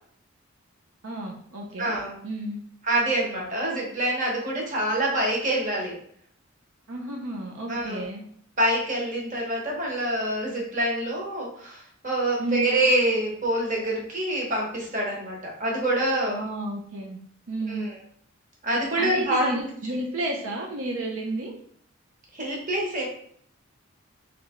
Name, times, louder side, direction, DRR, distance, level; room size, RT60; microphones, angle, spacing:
voice 1, 1.0-1.9 2.2-2.6 6.9-8.3 12.4-12.7 16.2-17.2 17.5-17.9 19.0-21.5, right 1 dB, 80° right, 0 dB, 0.7 m, -32 dB
voice 2, 1.8-2.2 2.8-5.9 7.7-8.0 8.6-16.4 17.7-18.0 18.6-19.6 22.3-23.1, right 1 dB, 40° right, -2 dB, 1.2 m, -26 dB
3.3 x 3.2 x 3.6 m, 0.62 s
head